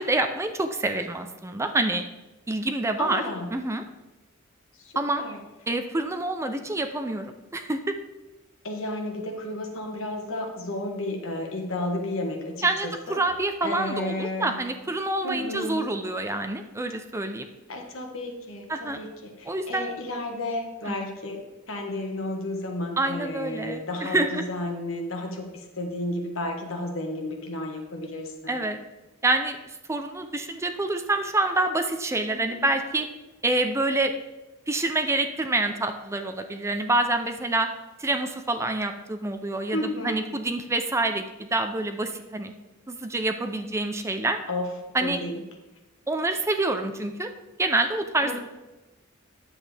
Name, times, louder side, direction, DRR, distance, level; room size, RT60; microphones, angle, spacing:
voice 1, 0.0-2.0 2.5-3.2 3.5-3.8 5.0-5.2 5.7-8.0 12.6-17.5 18.7-19.0 19.5-19.9 20.9-21.0 23.0-24.4 28.5-28.8 29.2-29.6 29.9-33.1 33.4-34.1 34.7-37.7 38.0-42.5 42.9-44.4 44.9-45.2 46.1-47.3 47.6-48.4, right 2 dB, 15° right, 7 dB, 0.5 m, -27 dB
voice 2, 3.0-3.5 4.8-5.4 8.6-13.2 13.6-14.6 15.2-15.9 17.7-21.4 21.7-28.6 32.3-32.7 39.7-40.2 44.5-44.7 45.0-45.4 48.2-48.4, left 1 dB, 70° left, 2 dB, 1.4 m, -32 dB
9.5 x 7.7 x 3.4 m, 1.1 s
head